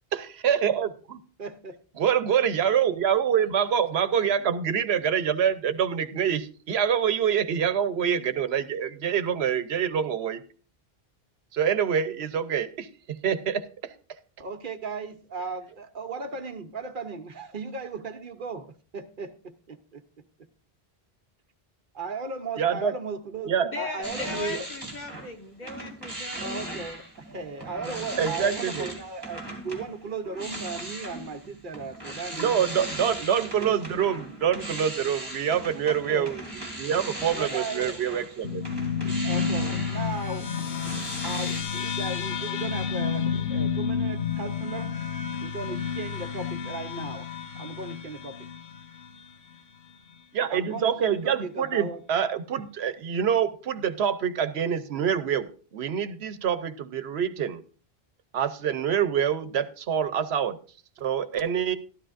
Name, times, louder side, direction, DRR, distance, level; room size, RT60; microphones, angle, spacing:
voice 1, 0.1-1.2 2.0-10.4 11.5-13.6 22.6-22.9 23.5-23.7 28.2-28.9 32.3-36.4 36.7-38.6 39.0-39.2 50.3-57.6 58.3-60.6 61.0-61.8, right 8 dB, 85° right, 12 dB, 1.0 m, -26 dB
voice 2, 1.4-1.7 14.4-20.0 21.9-24.7 26.4-32.5 33.2-34.0 35.8-36.3 37.3-38.1 39.2-40.5 41.2-44.9 45.4-47.3 47.5-48.5 50.5-52.0, right 4 dB, 55° right, 8 dB, 1.0 m, -36 dB
voice 3, 23.6-26.6, left 4 dB, 45° left, 3 dB, 1.6 m, -37 dB
sound 1, 24.0-25.3 25.6-41.6, right 1 dB, 20° right, 2.7 m, -38 dB
sound 2, 38.4-49.2, left 6 dB, 90° left, 1.1 m, -30 dB
13.0 x 12.5 x 2.5 m, 0.39 s
omnidirectional pair, 1.0 m